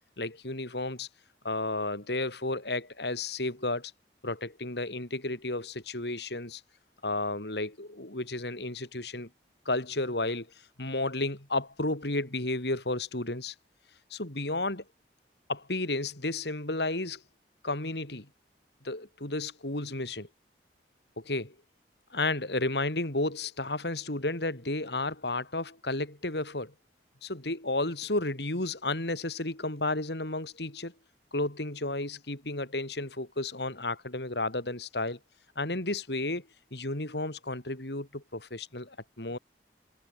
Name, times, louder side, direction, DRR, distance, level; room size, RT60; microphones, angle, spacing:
voice 1, 0.2-1.1 1.4-3.9 4.2-6.6 7.0-9.3 9.7-10.5 10.8-13.5 14.1-14.8 15.5-17.2 17.6-18.3 18.8-20.3 21.2-21.5 22.1-26.7 27.2-30.9 31.3-35.2 35.6-39.4, left 2 dB, 70° left, 4.1 m, -32 dB
head